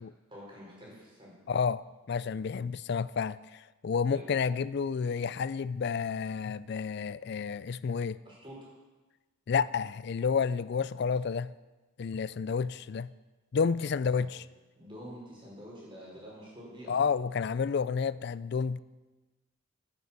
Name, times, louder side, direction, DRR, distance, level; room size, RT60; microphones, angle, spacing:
voice 1, 0.3-1.4 4.1-4.3 8.2-8.7 14.0-14.3 14.8-17.0, equal, 25° right, 4.7 m, -47 dB
voice 2, 1.5-8.2 9.5-11.5 12.0-13.1 13.5-14.4 16.9-18.8, left 6 dB, 50° left, 0.3 m, -30 dB
11.5 x 9.5 x 7.3 m
head